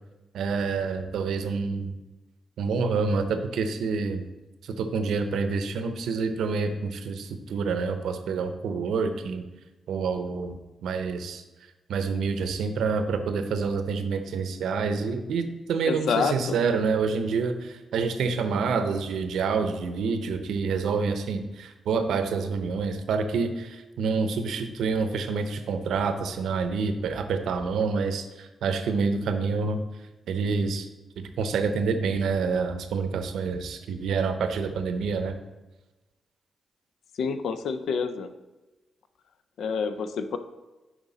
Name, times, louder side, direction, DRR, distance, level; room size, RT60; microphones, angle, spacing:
voice 1, 0.3-1.9 2.6-4.2 4.6-9.4 9.9-11.4 11.9-29.8 30.3-30.9 31.2-35.3, right 5 dB, 85° right, 8 dB, 0.6 m, -27 dB
voice 2, 15.8-16.6 37.1-38.3 39.6-40.4, left 5 dB, 80° left, 10 dB, 0.5 m, -28 dB
7.2 x 5.1 x 3.9 m, 1.1 s
cardioid pair, 55°, 0 cm